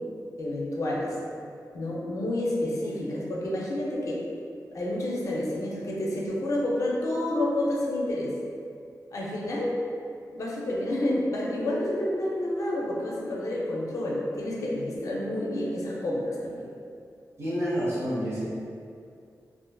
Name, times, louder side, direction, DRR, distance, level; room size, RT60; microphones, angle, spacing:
voice 1, 0.4-1.2 1.7-4.2 4.7-8.3 9.1-9.7 10.3-16.7, left 1 dB, 55° left, -4 dB, 0.4 m, -29 dB
voice 2, 17.4-18.5, equal, 40° right, -10 dB, 0.7 m, -28 dB
2.4 x 2.4 x 2.2 m, 2.4 s
wide cardioid pair, 165°, 7 cm